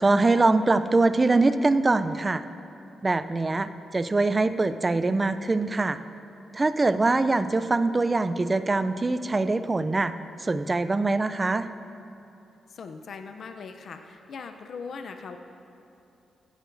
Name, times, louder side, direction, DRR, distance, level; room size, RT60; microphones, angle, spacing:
voice 1, 0.0-2.4 3.0-6.0 6.5-10.1 10.4-11.6, right 3 dB, 25° right, 11 dB, 0.4 m, -23 dB
voice 2, 12.7-15.4, left 5 dB, 60° left, 6 dB, 0.5 m, -40 dB
15.5 x 10.5 x 2.6 m, 2.8 s
cardioid pair, 110°, 0 cm